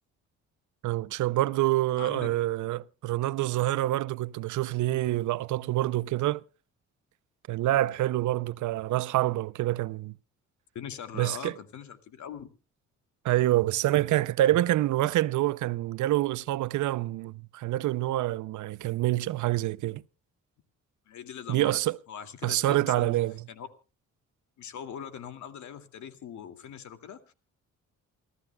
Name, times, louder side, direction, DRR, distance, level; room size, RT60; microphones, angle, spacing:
voice 1, 0.8-6.4 7.5-10.1 11.2-11.5 13.2-20.0 21.5-22.0 22.4-23.3, right 15 dB, 75° right, 0.6 m, -26 dB
voice 2, 2.0-2.3 10.7-12.5 21.1-21.8 22.1-23.1 23.5-23.7 24.6-27.3, left 8 dB, 70° left, 2.5 m, -41 dB
28.5 x 14.0 x 2.3 m
cardioid pair, 90°, 30 cm